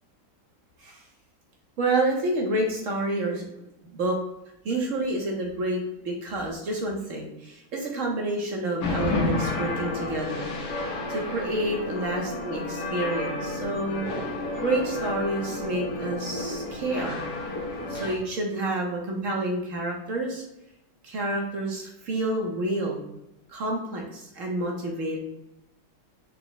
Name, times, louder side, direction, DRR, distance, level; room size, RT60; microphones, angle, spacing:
voice 1, 1.8-3.4 3.9-4.2 4.6-10.5 11.1-14.0 14.6-17.3 17.9-20.4 21.0-23.0 23.5-25.2, right 2 dB, 60° right, 0 dB, 1.0 m, -29 dB
sound 1, 8.8-18.2, left 2 dB, 80° left, 1.6 m, -31 dB
5.7 x 2.0 x 3.9 m, 0.89 s
omnidirectional pair, 1.9 m